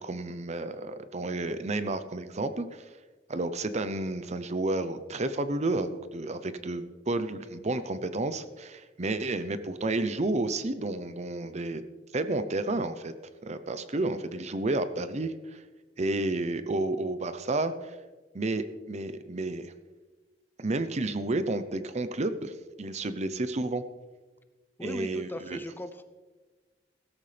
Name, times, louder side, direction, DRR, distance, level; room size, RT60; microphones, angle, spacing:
voice 1, 0.0-2.8 3.3-11.8 12.1-13.1 13.4-15.6 16.0-18.0 18.3-19.7 20.6-23.8 24.8-25.6, right 2 dB, 40° right, 11 dB, 0.7 m, -31 dB
voice 2, 24.8-26.0, left 1 dB, 10° left, 10 dB, 0.6 m, -38 dB
16.5 x 13.5 x 3.4 m, 1.3 s
head